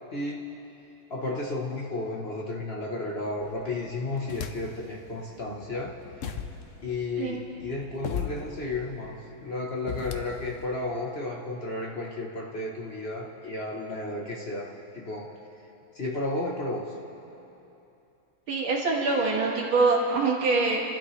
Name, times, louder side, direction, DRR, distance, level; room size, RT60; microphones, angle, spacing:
voice 1, 0.1-0.4 1.1-6.0 6.8-15.3 15.9-16.9, left 2 dB, 40° left, -2 dB, 1.0 m, -33 dB
sound 1, 3.4-4.9 5.4-10.7, left 7 dB, 80° left, 0.7 m, -39 dB
voice 2, 18.5-20.8, right 3 dB, 80° right, -1 dB, 2.5 m, -24 dB
29.5 x 12.5 x 3.2 m, 2.9 s
omnidirectional pair, 2.2 m